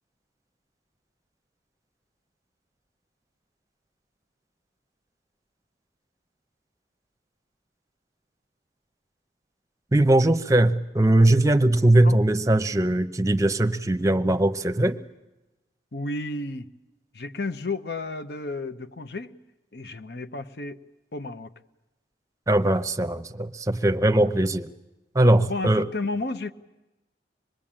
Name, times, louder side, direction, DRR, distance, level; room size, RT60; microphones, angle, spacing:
voice 1, 9.9-15.0 22.5-24.7 25.1-25.9, right 1 dB, 20° right, 8 dB, 0.8 m, -20 dB
voice 2, 15.9-16.7 17.1-19.3 19.7-20.8 21.1-21.5 25.4-26.5, left 2 dB, 65° left, 10 dB, 0.9 m, -32 dB
25.5 x 20.5 x 8.8 m, 1.0 s
head